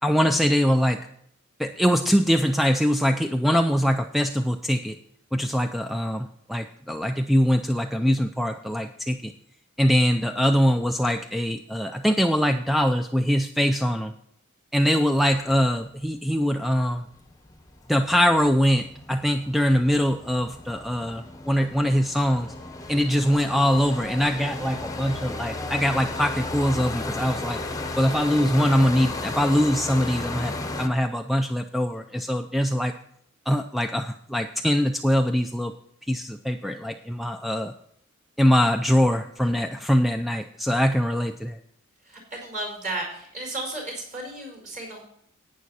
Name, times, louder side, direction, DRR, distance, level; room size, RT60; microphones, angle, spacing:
voice 1, 0.0-1.0 1.6-5.0 5.3-9.3 9.8-14.1 14.7-17.0 17.9-22.5 22.9-27.6 28.0-32.9 33.5-35.7 36.1-37.7 38.4-41.6, equal, ahead, 6 dB, 0.4 m, -23 dB
sound 1, 17.0-30.9, left 2 dB, 15° left, 0.9 m, -34 dB
voice 2, 42.0-45.0, right 2 dB, 40° right, 0 dB, 4.8 m, -34 dB
11.0 x 9.3 x 4.2 m, 0.69 s
head